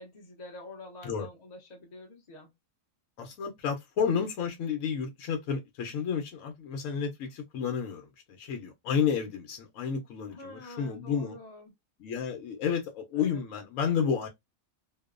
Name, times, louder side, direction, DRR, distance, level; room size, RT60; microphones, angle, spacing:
voice 1, 0.0-2.5 10.3-11.7 13.2-13.4, left 2 dB, 40° left, 0.7 m, -47 dB
voice 2, 3.2-11.4 12.0-14.3, left 7 dB, 75° left, 1.0 m, -31 dB
2.9 x 2.0 x 2.3 m
omnidirectional pair, 1.4 m